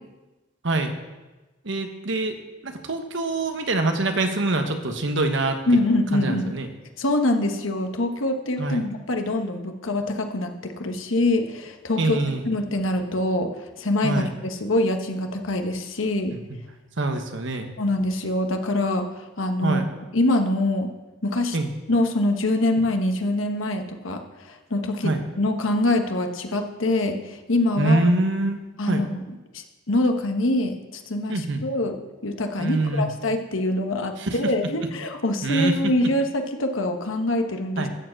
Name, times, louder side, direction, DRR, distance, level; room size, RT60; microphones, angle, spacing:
voice 1, 0.6-0.9 1.6-2.4 2.6-5.6 6.1-6.7 8.6-8.9 12.0-12.5 14.0-14.3 16.5-16.6 17.0-17.7 19.6-19.9 21.5-21.7 25.0-25.2 27.8-29.0 31.3-31.6 32.6-33.1 34.2-34.5 35.4-35.8 37.8-37.9, right 2 dB, 65° right, 6 dB, 1.2 m, -25 dB
voice 2, 5.7-6.5 7.0-12.2 12.4-13.5 13.8-14.2 14.6-16.3 17.8-19.8 20.1-20.9 21.2-21.6 21.9-25.1 25.4-28.0 28.8-29.2 29.5-32.0 32.2-37.9, left 1 dB, 75° left, 6 dB, 1.2 m, -24 dB
13.0 x 4.9 x 7.7 m, 1.1 s
head